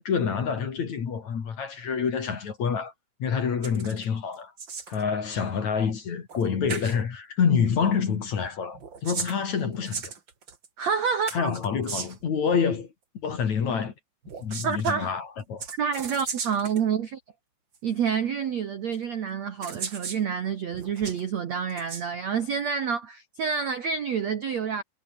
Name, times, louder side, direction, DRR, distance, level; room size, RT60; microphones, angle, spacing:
voice 1, 0.0-2.9 3.2-4.5 4.9-10.1 11.3-12.9 13.2-13.9 14.4-15.7, left 6 dB, 45° left, 3.2 m, -27 dB
sound 1, 3.6-4.1 4.3-5.0 6.3-6.4 6.7-7.0 8.7-10.7 11.3-12.3 14.2-15.0 15.6-16.8 17.7-17.8 18.9-19.0 19.6-20.2 20.7-21.2 21.7-22.0, right 5 dB, 35° right, 2.1 m, -36 dB
voice 2, 10.8-11.5 14.6-15.1 15.8-17.2 17.8-24.8, right 7 dB, 85° right, 1.5 m, -28 dB
omnidirectional pair, 5.7 m